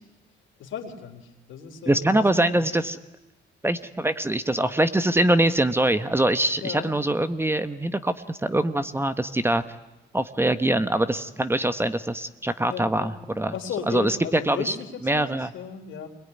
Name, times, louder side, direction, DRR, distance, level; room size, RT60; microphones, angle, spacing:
voice 1, 0.6-2.6 6.6-6.9 12.7-13.2 13.5-15.3 15.5-16.1, left 7 dB, 75° left, 5 dB, 3.8 m, -35 dB
voice 2, 1.8-3.0 3.6-9.6 10.1-13.5 13.9-14.8 15.0-15.5, right 1 dB, 10° right, 11 dB, 1.2 m, -23 dB
26.0 x 21.5 x 9.8 m, 0.99 s
cardioid pair, 90°, 20 cm